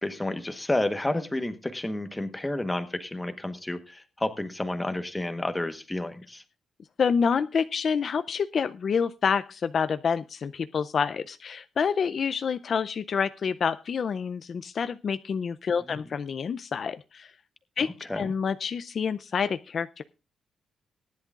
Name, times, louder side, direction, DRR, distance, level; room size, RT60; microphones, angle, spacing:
voice 1, 0.0-6.4 15.9-16.0 18.1-18.3, left 1 dB, 10° left, 9 dB, 1.1 m, -30 dB
voice 2, 7.0-17.3 17.8-17.9 18.1-20.0, left 6 dB, 40° left, 12 dB, 0.4 m, -28 dB
19.0 x 10.5 x 2.4 m, 0.32 s
wide cardioid pair, 175°, 0 cm